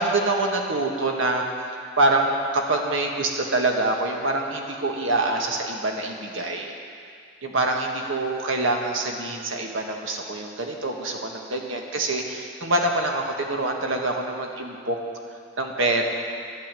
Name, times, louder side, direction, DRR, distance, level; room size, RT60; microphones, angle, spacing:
voice 1, 0.0-1.4 2.0-6.7 7.4-15.0 15.6-16.0, right 2 dB, 80° right, 1 dB, 1.6 m, -25 dB
11.5 x 10.5 x 7.6 m, 2.3 s
head